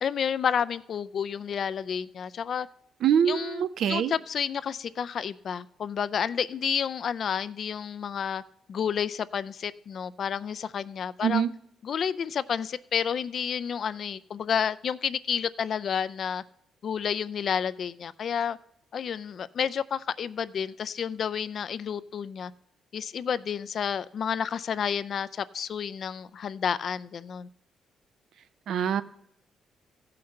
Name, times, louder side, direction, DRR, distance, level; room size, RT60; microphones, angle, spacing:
voice 1, 0.0-2.7 3.3-8.4 8.7-11.4 11.8-16.4 16.8-18.6 18.9-22.5 22.9-27.5, left 7 dB, 55° left, 16 dB, 0.4 m, -30 dB
voice 2, 3.0-4.1 11.2-11.5 28.7-29.0, right 8 dB, 70° right, 13 dB, 0.6 m, -24 dB
15.0 x 5.8 x 6.5 m, 0.77 s
cardioid pair, 90°, 0 cm